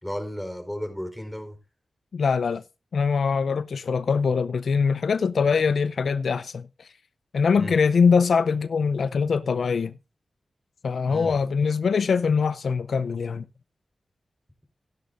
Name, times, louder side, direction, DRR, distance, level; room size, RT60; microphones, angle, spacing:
voice 1, 0.0-1.6 7.5-7.8 11.1-11.4, equal, 5° left, 4.5 m, -34 dB
voice 2, 2.1-2.6 2.9-6.9 7.3-9.9 10.8-13.5, left 5 dB, 80° left, 0.5 m, -23 dB
16.5 x 10.5 x 2.6 m
cardioid pair, 50°, 0 cm